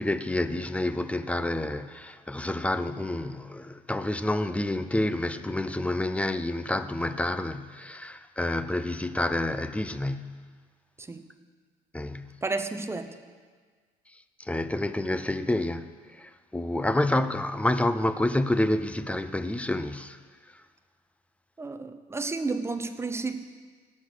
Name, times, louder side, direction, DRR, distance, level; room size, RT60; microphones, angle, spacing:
voice 1, 0.0-10.4 11.9-12.3 14.4-15.9 16.2-20.2, left 1 dB, 5° left, 0.6 m, -28 dB
voice 2, 12.4-13.1 21.6-23.4, right 3 dB, 15° right, 0.9 m, -32 dB
18.0 x 6.3 x 6.7 m
cardioid pair, 110°, 17 cm